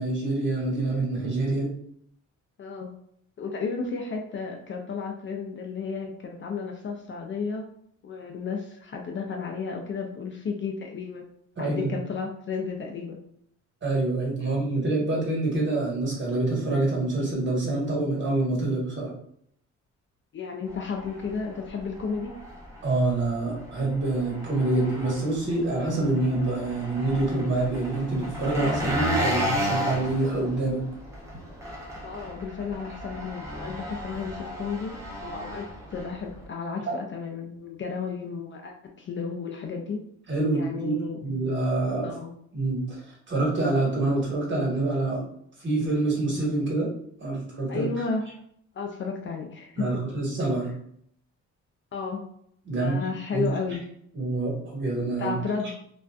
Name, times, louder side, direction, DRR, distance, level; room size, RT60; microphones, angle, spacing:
voice 1, 0.0-1.7 11.6-11.9 13.8-19.1 22.8-30.8 36.9-37.0 40.3-40.9 41.2-42.1 42.5-45.2 45.6-46.9 47.2-48.0 49.8-50.7 52.6-53.0 53.3-53.8 54.1-55.3 55.6-55.7, right 2 dB, 40° right, -4 dB, 1.3 m, -26 dB
voice 2, 2.6-2.9 3.4-7.6 8.0-11.2 11.6-13.2 14.5-14.6 20.3-22.3 32.0-35.0 35.2-35.6 35.9-40.0 40.5-41.2 42.0-42.3 47.7-48.2 48.7-49.9 51.9-52.3 52.7-53.9 55.2-55.7, left 5 dB, 40° left, 2 dB, 0.4 m, -33 dB
Engine, 20.7-36.5, equal, 10° right, 0.7 m, -34 dB
2.5 x 2.2 x 2.2 m, 0.68 s
cardioid pair, 90°, 30 cm